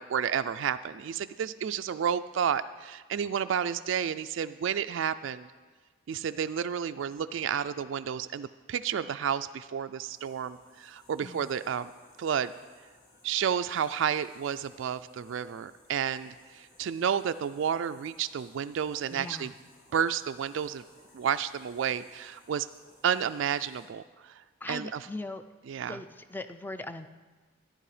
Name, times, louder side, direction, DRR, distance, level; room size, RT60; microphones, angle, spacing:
voice 1, 0.0-5.5 6.1-11.9 12.2-12.5 13.2-19.5 19.9-20.8 21.1-22.7 23.0-25.1 25.7-26.0, right 8 dB, 60° right, 11 dB, 0.3 m, -31 dB
sound 1, 10.1-23.9, left 1 dB, 80° left, 4.2 m, -61 dB
voice 2, 11.2-11.5 19.1-19.5 24.6-25.4 25.8-27.1, left 2 dB, 10° left, 10 dB, 0.4 m, -40 dB
14.0 x 10.5 x 4.9 m, 1.4 s
head